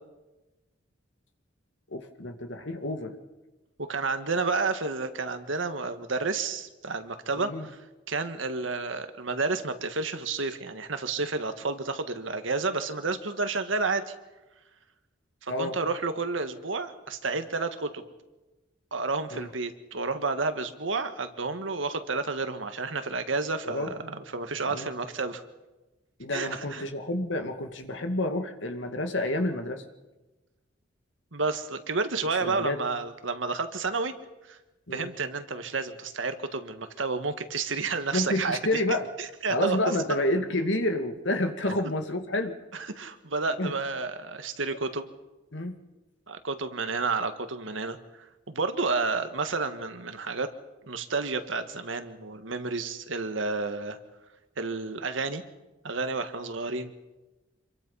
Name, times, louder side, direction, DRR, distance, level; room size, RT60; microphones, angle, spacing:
voice 1, 1.9-3.1 7.4-7.7 15.5-15.8 19.3-19.5 23.6-23.9 24.7-24.9 26.2-29.8 32.4-32.8 34.9-35.1 38.1-39.1 39.5-42.6 43.6-43.7 45.5-45.7, left 1 dB, 75° left, 6 dB, 2.2 m, -29 dB
voice 2, 3.8-7.8 8.1-14.1 15.4-18.0 18.9-25.4 26.3-26.9 31.3-34.1 34.5-34.6 34.9-38.8 39.2-40.0 42.7-45.1 46.3-48.0 48.5-50.5 50.8-54.0 54.6-55.4 55.8-56.9, right 4 dB, 85° right, 9 dB, 1.7 m, -30 dB
26.5 x 22.5 x 5.6 m, 1.1 s
head